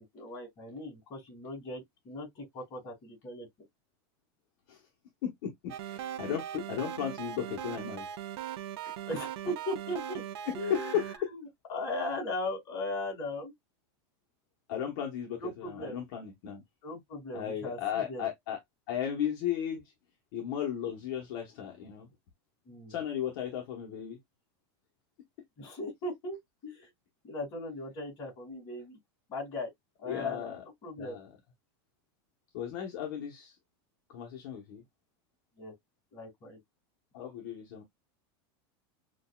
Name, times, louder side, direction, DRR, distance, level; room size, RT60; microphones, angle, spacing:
voice 1, 0.1-3.5 9.0-10.2 10.5-11.4 11.7-13.5 15.4-15.9 16.8-18.3 22.7-22.9 25.6-26.4 26.6-26.9 27.2-29.0 29.3-29.7 30.0-31.2 35.6-35.7 36.1-36.6, left 1 dB, 30° left, 2.7 m, -38 dB
voice 2, 5.2-8.3 8.8-8.9 10.5-11.0 14.7-16.6 17.3-18.6 18.9-19.8 20.3-22.1 22.9-24.2 30.1-30.6 31.0-31.3 32.5-33.6 34.1-34.8 37.1-37.8, left 9 dB, 55° left, 1.0 m, -35 dB
sound 1, 5.7-11.2, right 10 dB, 75° right, 0.6 m, -39 dB
6.4 x 2.3 x 2.3 m
supercardioid pair, 175°, 14 cm